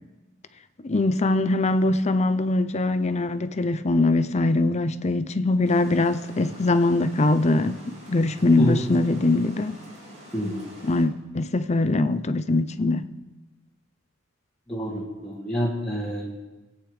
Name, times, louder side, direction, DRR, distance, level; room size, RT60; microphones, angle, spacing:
voice 1, 0.9-7.8 8.1-9.8 10.8-13.1, left 2 dB, 35° left, 0.6 m, -22 dB
Water, 5.6-11.0, equal, 35° right, 5.5 m, -46 dB
voice 2, 14.7-16.5, equal, 5° left, 2.2 m, -28 dB
25.5 x 8.9 x 3.3 m
head